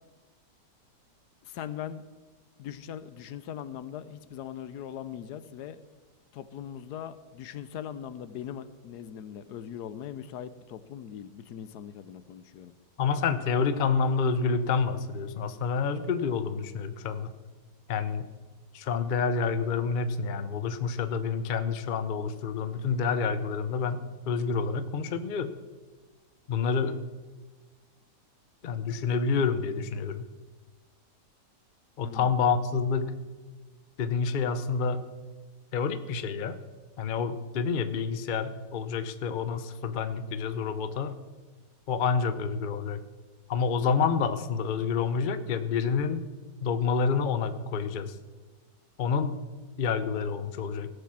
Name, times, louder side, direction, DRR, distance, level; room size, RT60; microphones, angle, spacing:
voice 1, 1.4-2.0 2.6-5.8 6.3-12.7 32.0-32.3, left 9 dB, 75° left, 14 dB, 1.2 m, -40 dB
voice 2, 13.0-17.3 17.9-18.2 18.7-25.5 26.5-27.0 28.6-30.2 32.0-33.1 34.0-35.0 35.7-36.6 37.0-41.2 41.9-43.0 43.5-46.2 46.6-48.1 49.0-49.4 49.8-50.9, left 5 dB, 55° left, 12 dB, 0.5 m, -28 dB
17.0 x 6.9 x 7.3 m, 1.3 s
omnidirectional pair, 1.8 m